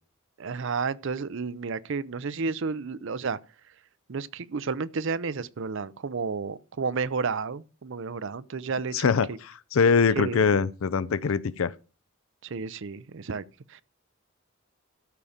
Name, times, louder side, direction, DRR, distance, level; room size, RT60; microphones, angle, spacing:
voice 1, 0.4-3.4 4.1-9.4 10.2-10.6 12.4-13.4 13.7-13.8, right 4 dB, 60° right, 0.6 m, -31 dB
voice 2, 8.9-11.7, left 5 dB, 75° left, 0.5 m, -23 dB
13.0 x 5.0 x 7.2 m
head